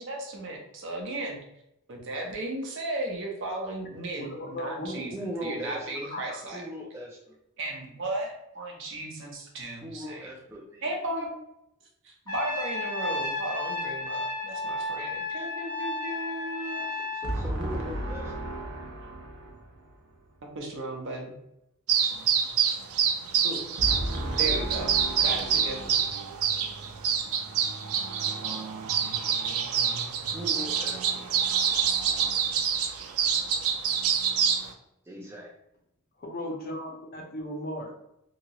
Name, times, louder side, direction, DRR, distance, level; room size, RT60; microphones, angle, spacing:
voice 1, 0.0-1.4 1.9-5.1 5.4-6.6 7.6-10.3 10.8-11.4 12.0-16.9 17.2-21.3 23.4-26.1, right 1 dB, 60° right, 0 dB, 0.8 m, -35 dB
voice 2, 4.2-5.0 6.1-6.2 36.2-38.0, left 1 dB, 45° left, 1 dB, 0.6 m, -36 dB
voice 3, 4.8-6.1 6.5-7.4 9.8-10.9 16.9-18.5 30.3-31.2 35.0-35.5, equal, 10° right, -4 dB, 0.4 m, -39 dB
Trumpet, 12.3-17.3, left 2 dB, 20° left, 1.0 m, -33 dB
sound 1, 21.9-34.7, right 7 dB, 80° right, 0.4 m, -27 dB
2.9 x 2.8 x 2.8 m, 0.82 s
head